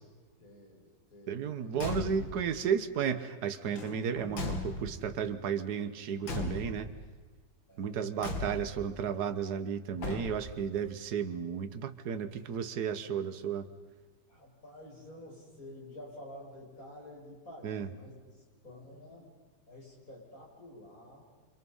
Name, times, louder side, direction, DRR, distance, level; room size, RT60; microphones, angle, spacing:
voice 1, 0.4-1.8 2.1-2.3 7.7-8.1 14.3-19.3 19.7-21.3, left 1 dB, 45° left, -2 dB, 7.2 m, -50 dB
voice 2, 1.3-6.9 7.8-13.7 17.6-17.9, right 7 dB, 60° right, 10 dB, 1.7 m, -33 dB
Car / Truck / Slam, 1.7-2.5 3.7-5.2 6.2-7.0 8.2-8.9 10.0-10.7, left 2 dB, 80° left, 3.3 m, -37 dB
29.0 x 26.0 x 5.6 m, 1.4 s
omnidirectional pair, 2.1 m